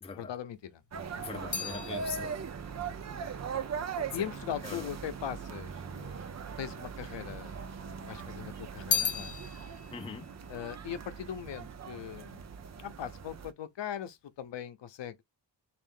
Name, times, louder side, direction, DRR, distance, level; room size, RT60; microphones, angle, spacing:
voice 1, 0.1-0.8 4.0-7.5 8.0-9.4 10.5-12.5 12.8-15.2, left 9 dB, 75° left, 0.7 m, -40 dB
sound 1, 0.5-5.0 5.7-6.6 6.8-8.0 8.3-11.8 12.1-12.6, left 6 dB, 40° left, 1.3 m, -38 dB
sound 2, 0.9-13.5, right 6 dB, 40° right, 0.6 m, -40 dB
voice 2, 1.2-2.4 4.1-4.3 4.6-4.9 9.9-10.3, left 6 dB, 15° left, 0.4 m, -41 dB
3.6 x 2.6 x 3.6 m
wide cardioid pair, 110°, 43 cm